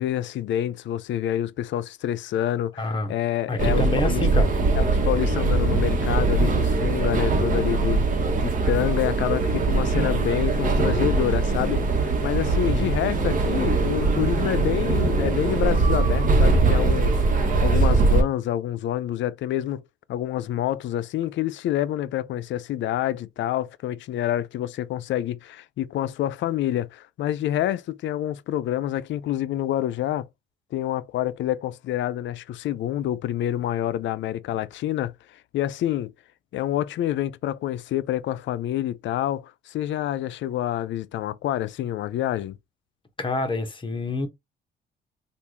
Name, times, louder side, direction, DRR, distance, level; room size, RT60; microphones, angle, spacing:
voice 1, 0.0-4.4 4.8-8.0 8.4-19.8 20.1-30.3 30.7-36.1 36.5-42.6, left 12 dB, 70° left, 0.4 m, -27 dB
voice 2, 2.8-3.1 3.5-4.5 12.6-12.9 43.2-44.3, left 3 dB, 25° left, 1.1 m, -27 dB
sound 1, 3.6-18.2, right 3 dB, 40° right, 1.1 m, -21 dB
3.4 x 2.4 x 3.0 m
cardioid pair, 90°, 20 cm